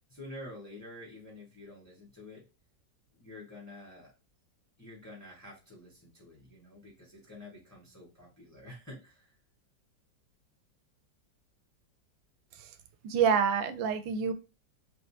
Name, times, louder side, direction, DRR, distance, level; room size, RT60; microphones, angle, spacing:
voice 1, 0.1-2.4 3.1-4.1 4.8-9.3, left 1 dB, 10° left, -5 dB, 1.0 m, -48 dB
voice 2, 13.0-14.3, right 7 dB, 85° right, 10 dB, 1.3 m, -27 dB
3.3 x 3.0 x 2.7 m, 0.30 s
omnidirectional pair, 2.0 m